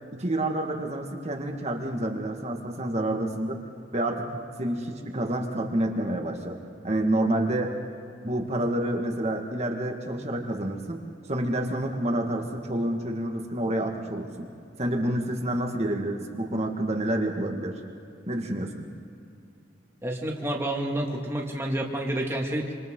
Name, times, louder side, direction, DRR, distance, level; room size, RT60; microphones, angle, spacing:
voice 1, 0.1-3.6 3.9-4.2 4.6-6.6 6.8-7.7 8.2-11.0 11.3-14.5 14.8-17.8 18.3-18.9, right 1 dB, 35° right, 2 dB, 1.8 m, -28 dB
voice 2, 20.0-22.7, right 1 dB, 15° right, -1 dB, 2.3 m, -29 dB
27.5 x 26.5 x 3.8 m, 2.6 s
head